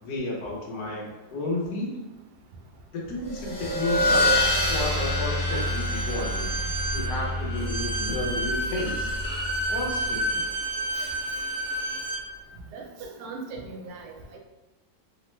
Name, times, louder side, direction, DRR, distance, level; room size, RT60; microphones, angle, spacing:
voice 1, 0.0-2.0 2.9-4.3 4.7-6.5 6.9-9.1 9.7-10.4, left 2 dB, 75° left, -2 dB, 1.2 m, -32 dB
sound 1, 3.2-10.3, left 1 dB, 40° left, 0.7 m, -27 dB
Bowed string instrument, 5.4-12.2, right 1 dB, 40° right, 0.7 m, -31 dB
voice 2, 10.9-11.4 12.7-14.4, right 3 dB, 80° right, 0 dB, 1.2 m, -40 dB
3.1 x 2.1 x 3.0 m, 1.1 s
omnidirectional pair, 1.8 m